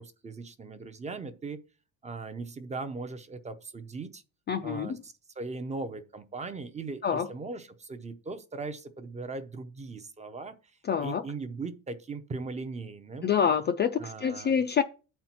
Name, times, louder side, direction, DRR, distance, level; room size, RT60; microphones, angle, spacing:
voice 1, 0.0-1.6 2.0-4.2 4.6-10.5 11.0-13.3 14.0-14.6, right 3 dB, 15° right, 0.6 m, -39 dB
voice 2, 4.5-5.0 7.0-7.3 10.8-11.2 13.2-14.8, left 7 dB, 25° left, 0.4 m, -27 dB
8.6 x 4.4 x 5.8 m
cardioid pair, 145°, 42 cm